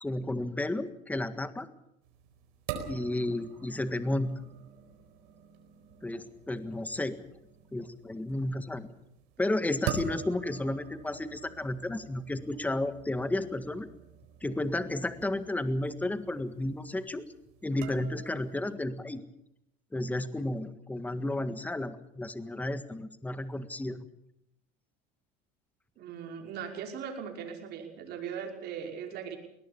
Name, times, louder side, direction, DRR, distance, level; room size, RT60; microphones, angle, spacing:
voice 1, 0.0-1.7 2.9-4.3 6.0-7.2 7.7-8.9 9.4-13.9 14.4-17.2 17.6-19.2 19.9-24.1, left 1 dB, 10° left, 11 dB, 1.7 m, -32 dB
sound 1, 2.0-18.8, right 8 dB, 75° right, 4.6 m, -45 dB
voice 2, 26.0-29.4, right 7 dB, 55° right, 2 dB, 5.6 m, -39 dB
21.5 x 19.0 x 7.0 m, 0.80 s
supercardioid pair, 105°, 20 cm